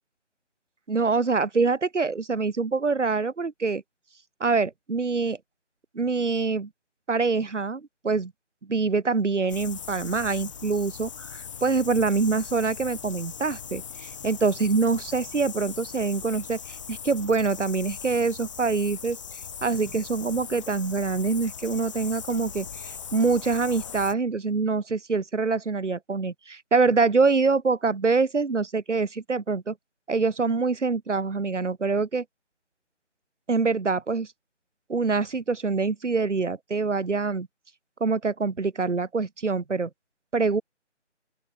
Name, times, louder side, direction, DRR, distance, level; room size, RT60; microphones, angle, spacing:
voice 1, 0.9-3.8 4.4-5.4 5.9-6.7 7.1-8.3 8.7-19.2 19.6-29.7 30.1-32.2 33.5-34.3 34.9-37.5 38.0-39.9 40.3-40.6, right 4 dB, 75° right, 1.3 m, -25 dB
sound 1, 9.5-24.1, left 7 dB, 25° left, 2.8 m, -40 dB
open air
figure-of-eight pair, 160°, 36 cm